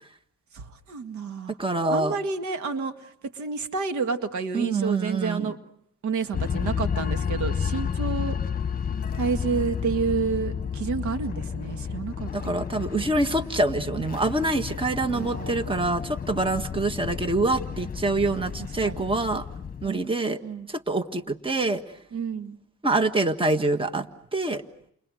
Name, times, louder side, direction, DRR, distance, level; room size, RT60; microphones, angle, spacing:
voice 1, 0.5-1.6 1.9-5.6 6.0-8.4 9.1-12.6 15.1-16.1 18.6-19.1 19.8-20.0 20.4-20.7 22.1-22.6, right 5 dB, 70° right, 8 dB, 2.0 m, -30 dB
voice 2, 1.6-2.1 4.5-5.5 12.3-19.5 19.8-20.4 20.7-21.8 22.8-24.1 24.3-24.6, right 2 dB, 15° right, 9 dB, 1.6 m, -25 dB
sound 1, 6.3-19.9, left 7 dB, 30° left, 1.3 m, -31 dB
30.0 x 29.5 x 6.4 m, 0.71 s
cardioid pair, 90°, 30 cm